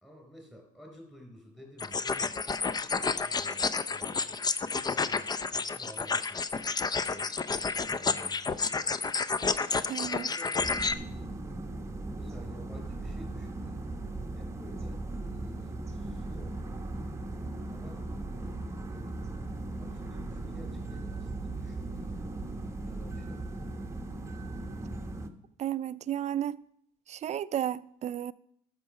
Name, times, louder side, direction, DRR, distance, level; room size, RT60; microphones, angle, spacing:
voice 1, 0.0-6.8 7.1-8.9 9.7-10.9 12.0-13.9 14.3-16.7 17.7-18.1 18.7-19.2 19.8-22.2 22.8-23.8, equal, 5° left, 4.2 m, -52 dB
sound 1, 1.8-10.9, left 4 dB, 25° left, 0.5 m, -30 dB
voice 2, 9.9-10.3 25.6-26.6 27.1-28.3, right 11 dB, 40° right, 0.4 m, -33 dB
sound 2, 10.6-25.3, right 2 dB, 15° right, 1.0 m, -38 dB
12.5 x 5.8 x 6.5 m
cardioid pair, 110°, 17 cm